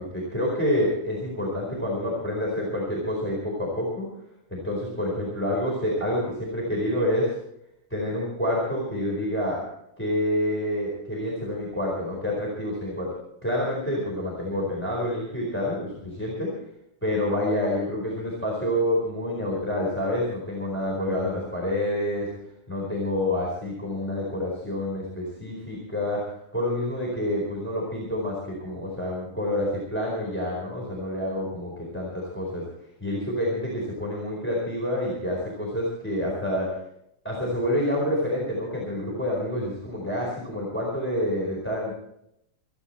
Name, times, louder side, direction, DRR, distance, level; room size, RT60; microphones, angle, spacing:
voice 1, 0.0-4.1 4.5-7.4 7.9-9.6 10.0-13.1 13.4-16.5 17.0-22.3 22.7-26.2 26.5-32.6 33.0-36.7 37.2-41.9, left 1 dB, 5° left, -4 dB, 4.2 m, -28 dB
27.0 x 10.0 x 4.3 m, 0.77 s
omnidirectional pair, 3.5 m